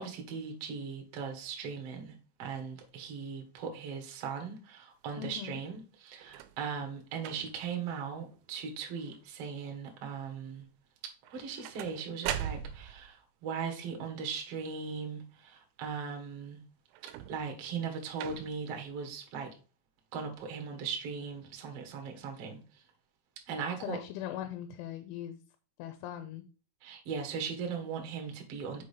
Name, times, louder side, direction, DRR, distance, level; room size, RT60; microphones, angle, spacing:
voice 1, 0.0-10.6 11.3-16.6 17.3-19.5 20.1-22.8 23.5-24.0 26.8-28.8, right 6 dB, 65° right, 1.5 m, -39 dB
voice 2, 5.2-5.6 23.8-25.4 25.8-26.4, left 11 dB, 85° left, 3.2 m, -40 dB
sound 1, 6.2-6.6 7.2-7.7 8.3-8.7 9.0-9.5 11.2-13.1 16.9-17.6 18.2-18.7 19.6-19.7, right 10 dB, 85° right, 3.0 m, -40 dB
6.4 x 5.6 x 5.0 m
omnidirectional pair, 5.4 m